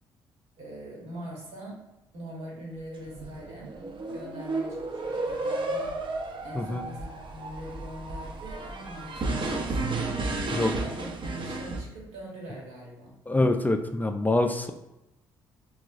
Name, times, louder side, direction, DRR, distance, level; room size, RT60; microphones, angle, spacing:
voice 1, 0.6-1.8 2.1-3.7 4.1-6.0 6.4-10.1 10.8-13.1, right 1 dB, 70° right, -3 dB, 1.4 m, -42 dB
sound 1, 3.0-11.8, right 2 dB, 45° right, 0.5 m, -32 dB
voice 2, 13.3-14.7, left 2 dB, 15° left, 6 dB, 0.3 m, -25 dB
3.5 x 2.3 x 2.5 m, 0.93 s
hypercardioid pair, 50°, 11 cm